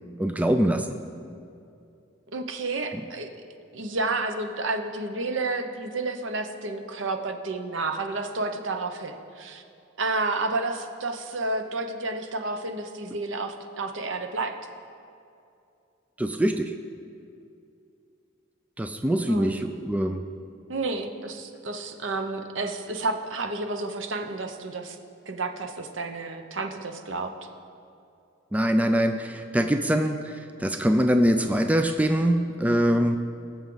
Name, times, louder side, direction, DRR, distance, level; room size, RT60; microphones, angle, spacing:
voice 1, 0.2-1.0 16.2-16.7 18.8-20.2 28.5-33.2, equal, 10° right, 6 dB, 0.4 m, -23 dB
voice 2, 2.3-3.3 3.7-9.6 10.0-14.5 19.3-19.6 20.7-25.0 25.3-27.3, right 3 dB, 70° right, 6 dB, 0.9 m, -30 dB
19.0 x 7.2 x 3.9 m, 2.6 s
head